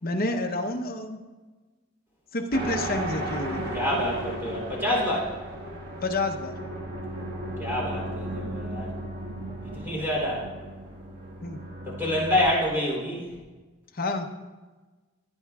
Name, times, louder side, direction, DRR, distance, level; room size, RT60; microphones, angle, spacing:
voice 1, 0.0-1.2 2.3-3.6 6.0-6.5 11.4-11.6 13.9-14.3, left 2 dB, 40° left, 3 dB, 0.8 m, -29 dB
sound 1, 2.5-12.5, right 1 dB, 50° right, 1.6 m, -35 dB
voice 2, 3.7-5.3 7.6-8.9 9.7-10.5 11.8-13.3, left 1 dB, 10° right, -5 dB, 3.3 m, -27 dB
17.0 x 9.5 x 2.4 m, 1.3 s
head